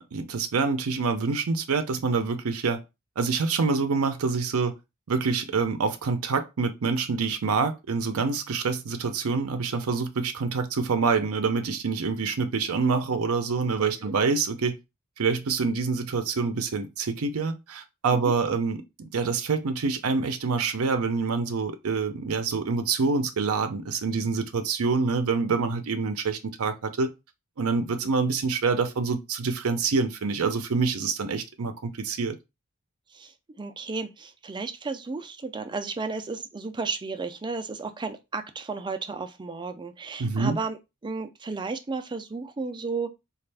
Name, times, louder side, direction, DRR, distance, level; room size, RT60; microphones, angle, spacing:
voice 1, 0.0-2.8 3.2-4.7 5.1-14.8 15.2-27.1 27.6-32.4 40.2-40.6, right 4 dB, 75° right, 0.5 m, -26 dB
voice 2, 13.8-14.2 18.1-18.3 33.1-43.1, right 4 dB, 20° right, 0.4 m, -33 dB
4.2 x 2.4 x 3.3 m
head